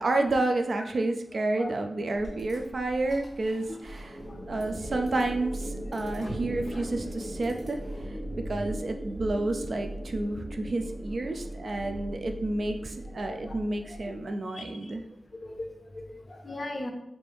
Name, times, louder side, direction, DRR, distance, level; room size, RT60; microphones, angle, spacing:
voice 1, 0.0-4.2 4.5-7.8 8.1-8.2 8.5-15.0, right 2 dB, 50° right, 6 dB, 0.3 m, -30 dB
voice 2, 1.3-1.7 2.3-2.4 3.7-3.8 4.3-4.4 6.2-6.8 13.1-13.5 13.9-14.2 14.5-14.9 15.4-16.9, left 1 dB, 30° left, 4 dB, 0.5 m, -40 dB
sound 1, 2.1-8.1, right 1 dB, 75° right, 1.5 m, -50 dB
sound 2, 3.7-14.2, right 1 dB, 20° right, 1.3 m, -38 dB
4.5 x 2.6 x 3.4 m, 0.84 s
wide cardioid pair, 145°, 0 cm